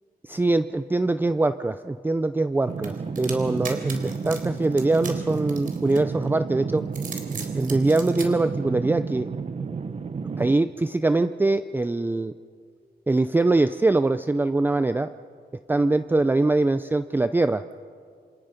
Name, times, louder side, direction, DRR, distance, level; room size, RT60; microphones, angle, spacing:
voice 1, 0.3-6.8 7.5-9.3 10.4-12.3 13.1-15.1 15.7-17.8, right 2 dB, 10° right, 11 dB, 0.5 m, -23 dB
sound 1, 2.7-10.6, right 5 dB, 40° right, 0.9 m, -32 dB
sound 2, 2.8-6.3 6.8-8.3, right 5 dB, 55° right, 3.6 m, -38 dB
27.0 x 27.0 x 5.2 m, 2.2 s
wide cardioid pair, 115°, 17 cm